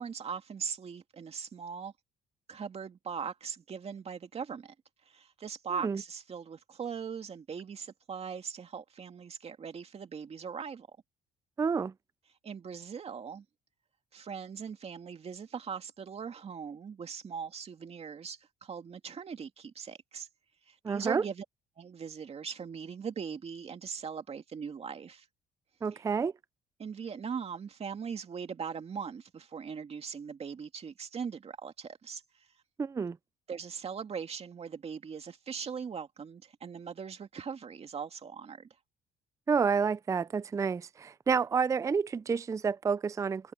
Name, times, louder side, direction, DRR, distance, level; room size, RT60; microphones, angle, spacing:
voice 1, 0.0-1.9 2.5-4.7 5.1-11.0 12.4-13.4 14.1-20.3 20.7-21.4 21.8-25.3 25.9-26.0 26.8-32.2 33.5-38.7, right 6 dB, 35° right, 2.4 m, -40 dB
voice 2, 11.6-11.9 20.8-21.2 25.8-26.3 32.8-33.2 39.5-43.5, right 5 dB, 20° right, 0.4 m, -29 dB
cardioid pair, 110°, 17 cm